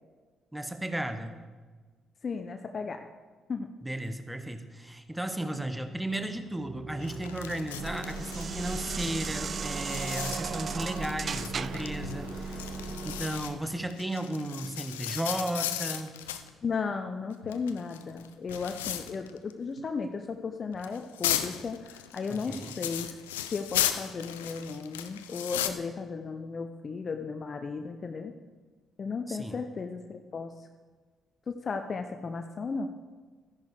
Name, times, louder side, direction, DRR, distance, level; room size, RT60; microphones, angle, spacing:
voice 1, 0.5-1.4 3.8-12.7 13.0-16.1 22.3-22.8 29.3-29.6, right 1 dB, 10° right, 9 dB, 1.3 m, -35 dB
voice 2, 2.2-3.1 3.5-3.7 16.6-23.1 23.5-28.3 29.0-30.7 31.5-32.9, left 4 dB, 45° left, 6 dB, 0.7 m, -35 dB
sound 1, 6.2-12.0, right 6 dB, 50° right, 0.3 m, -38 dB
sound 2, 7.0-16.5 17.3-19.5 19.8-19.9 20.7-25.7, left 11 dB, 85° left, 0.5 m, -36 dB
sound 3, 7.8-13.2, right 2 dB, 70° right, 2.2 m, -38 dB
13.5 x 10.5 x 4.8 m, 1.4 s
figure-of-eight pair, 40°, 0 cm